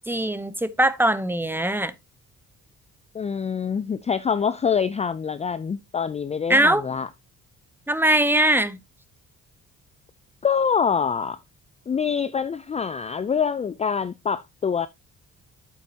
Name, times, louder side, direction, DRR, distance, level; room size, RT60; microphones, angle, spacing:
voice 1, 0.1-1.9 6.5-6.8 7.9-8.8, right 1 dB, 5° right, 0.8 m, -21 dB
voice 2, 3.1-7.1 10.4-11.4 11.9-14.9, left 6 dB, 20° left, 0.4 m, -25 dB
8.3 x 8.2 x 2.8 m
cardioid pair, 90°, 30 cm